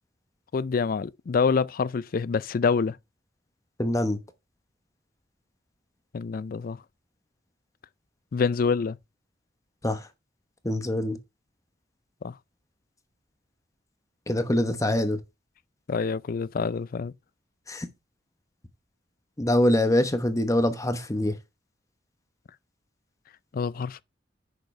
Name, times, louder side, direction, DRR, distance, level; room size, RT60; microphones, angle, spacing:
voice 1, 0.5-3.0 6.1-6.8 8.3-9.0 12.2-12.3 15.9-17.1 23.5-24.0, left 5 dB, 50° left, 0.4 m, -26 dB
voice 2, 3.8-4.2 9.8-10.0 10.6-11.2 14.3-15.2 17.7-17.9 19.4-21.3, left 1 dB, 20° left, 1.0 m, -24 dB
9.5 x 6.7 x 3.3 m
head